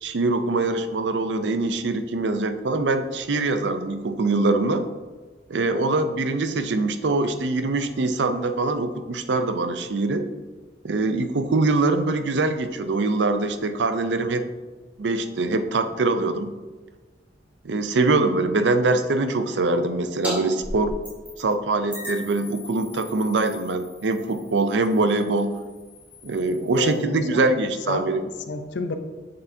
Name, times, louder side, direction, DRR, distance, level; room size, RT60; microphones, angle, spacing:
voice 1, 0.0-4.8 5.5-10.3 10.8-14.4 15.0-16.5 17.6-21.0 21.4-25.5 26.2-28.2, right 3 dB, 80° right, 9 dB, 0.5 m, -23 dB
sound 1, 20.2-20.4 20.6-21.5 21.9-27.0, left 1 dB, 10° right, 2.2 m, -38 dB
voice 2, 26.7-27.4 27.9-29.0, left 3 dB, 80° left, 8 dB, 0.6 m, -30 dB
6.9 x 6.8 x 2.7 m, 1.3 s
head